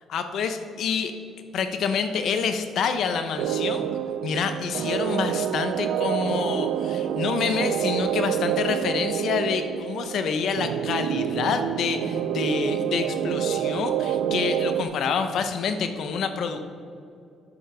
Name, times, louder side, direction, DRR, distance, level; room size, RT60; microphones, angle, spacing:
voice 1, 0.1-1.1 1.5-3.9 4.2-16.6, left 6 dB, 60° left, 8 dB, 0.8 m, -27 dB
sound 1, 3.4-14.8, right 10 dB, 80° right, 0.3 m, -27 dB
9.7 x 6.7 x 5.6 m, 2.5 s
cardioid pair, 150°, 0 cm